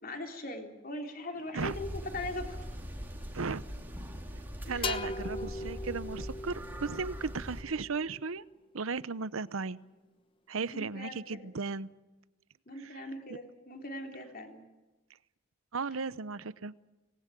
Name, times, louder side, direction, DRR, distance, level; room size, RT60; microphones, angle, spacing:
voice 1, 0.0-2.6 4.6-5.1 10.7-11.5 12.7-14.7, left 1 dB, 45° left, 3 dB, 3.4 m, -41 dB
sound 1, 1.3-6.8, equal, 40° right, 3.1 m, -57 dB
sound 2, 1.6-7.6, equal, 10° right, 2.4 m, -42 dB
voice 2, 4.7-8.4 8.7-9.8 10.5-11.9 15.7-16.7, right 4 dB, 80° right, 17 dB, 0.8 m, -35 dB
sound 3, 4.8-8.5, left 3 dB, 25° left, 1.0 m, -40 dB
25.0 x 19.5 x 9.1 m, 1.1 s
head